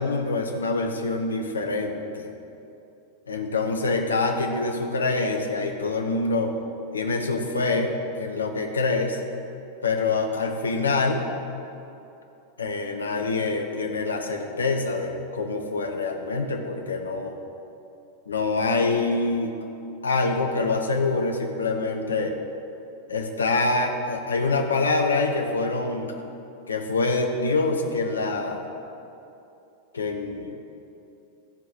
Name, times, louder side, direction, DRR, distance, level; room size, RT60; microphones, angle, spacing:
voice 1, 0.0-2.3 3.3-6.5 6.9-9.2 9.8-11.3 12.6-17.4 18.3-19.5 20.0-22.4 23.1-26.1 26.7-28.6 29.9-30.5, left 3 dB, 75° left, 4 dB, 0.9 m, -25 dB
14.0 x 4.7 x 5.9 m, 2.8 s
figure-of-eight pair, 90°, 0 cm